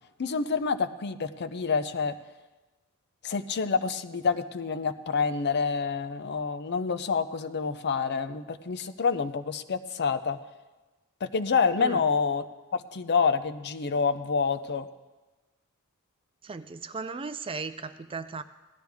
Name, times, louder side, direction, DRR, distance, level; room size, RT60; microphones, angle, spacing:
voice 1, 0.2-2.1 3.2-10.4 11.2-12.5 12.7-14.9, left 5 dB, 50° left, 11 dB, 0.6 m, -27 dB
voice 2, 16.4-18.4, right 4 dB, 25° right, 11 dB, 0.4 m, -36 dB
17.5 x 12.0 x 3.5 m, 1.2 s
head